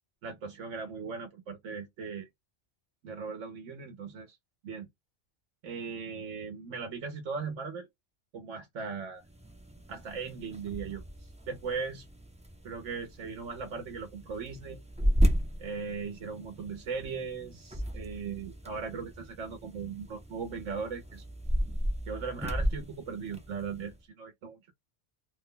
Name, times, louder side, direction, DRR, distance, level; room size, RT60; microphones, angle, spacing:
voice 1, 0.2-2.3 3.0-4.4 4.6-4.9 5.6-7.9 8.3-9.2 9.9-11.0 11.5-12.1 12.6-14.8 15.6-21.2 22.1-24.6, right 5 dB, 80° right, 1.1 m, -38 dB
sound 1, 9.2-24.0, equal, 10° right, 0.4 m, -34 dB
2.9 x 2.2 x 3.7 m
omnidirectional pair, 1.2 m